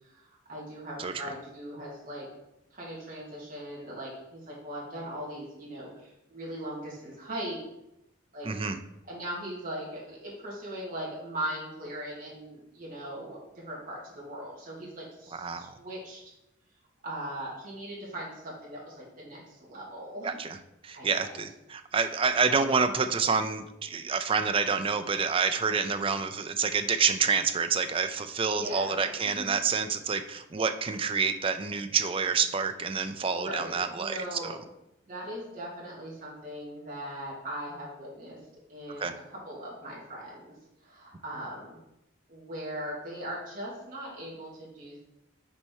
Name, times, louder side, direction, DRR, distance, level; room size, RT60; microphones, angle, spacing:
voice 1, 0.0-2.3 2.7-7.6 8.3-8.5 9.1-16.3 17.0-20.3 20.9-21.3 28.5-29.6 33.3-34.5 35.1-38.4 38.7-40.5 40.8-41.8 42.3-45.1, equal, 40° right, -5 dB, 2.4 m, -39 dB
voice 2, 8.4-8.8 15.3-15.8 20.2-20.6 20.8-34.6 39.0-39.1, right 5 dB, 25° right, 9 dB, 0.4 m, -28 dB
6.2 x 4.3 x 4.7 m, 0.88 s
head